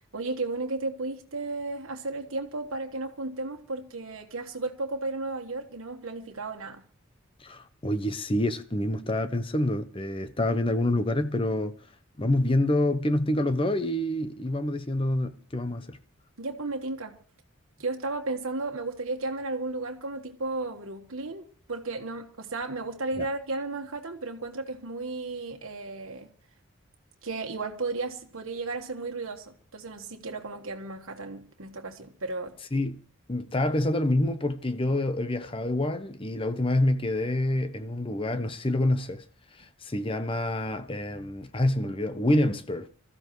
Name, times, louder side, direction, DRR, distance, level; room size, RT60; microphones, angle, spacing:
voice 1, 0.1-6.8 16.4-17.2 17.8-26.3 27.2-32.6, right 3 dB, 80° right, 1.4 m, -34 dB
voice 2, 7.4-11.8 12.2-16.0 23.2-23.3 32.7-33.0 33.3-39.2 39.6-42.9, left 1 dB, 25° left, 0.8 m, -27 dB
25.0 x 14.0 x 3.1 m
head